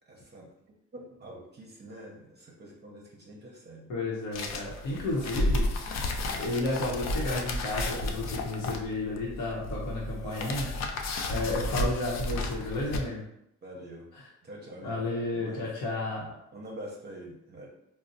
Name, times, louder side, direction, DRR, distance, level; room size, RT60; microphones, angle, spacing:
voice 1, 0.1-0.5 0.9-3.9 4.8-5.5 10.2-10.6 11.3-11.8 13.6-14.1 14.4-15.0 15.3-15.7 16.5-17.7, right 1 dB, 35° right, -2 dB, 0.6 m, -45 dB
voice 2, 3.9-5.6 6.4-10.7 11.3-13.2 14.8-16.3, left 2 dB, 85° left, -4 dB, 0.8 m, -32 dB
sound 1, 4.3-13.0, left 1 dB, 60° left, 0.5 m, -32 dB
4.0 x 2.0 x 2.6 m, 0.79 s
cardioid pair, 90°, 30 cm